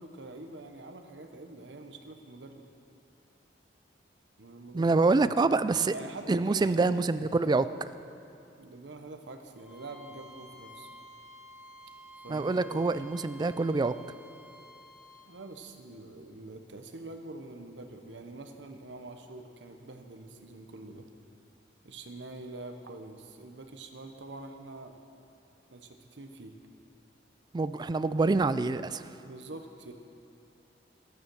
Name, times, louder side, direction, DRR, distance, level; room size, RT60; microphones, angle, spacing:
voice 1, 0.0-2.6 4.4-5.3 5.9-7.1 8.6-10.9 12.2-13.1 15.3-21.1 21.8-24.9 25.7-26.5 29.2-29.9, right 2 dB, 85° right, 5 dB, 1.0 m, -45 dB
voice 2, 4.7-5.9 6.3-7.7 12.3-13.9 27.5-29.0, right 3 dB, 25° right, 14 dB, 0.3 m, -26 dB
Bowed string instrument, 9.6-15.3, equal, 5° right, 2.0 m, -51 dB
13.0 x 9.4 x 6.3 m, 2.7 s
head